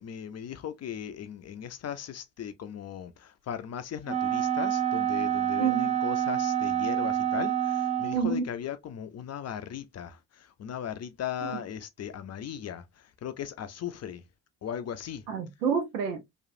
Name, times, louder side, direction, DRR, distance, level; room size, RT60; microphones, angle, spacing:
voice 1, 0.0-14.2 14.6-15.2, left 9 dB, 35° left, 0.5 m, -38 dB
Wind instrument woodwind instrument, 4.1-8.4, right 10 dB, 15° right, 0.5 m, -27 dB
voice 2, 5.6-5.9 8.1-8.4 11.4-11.5 15.3-16.2, right 6 dB, 85° right, 0.8 m, -28 dB
3.0 x 2.3 x 2.5 m
hypercardioid pair, 50°, 47 cm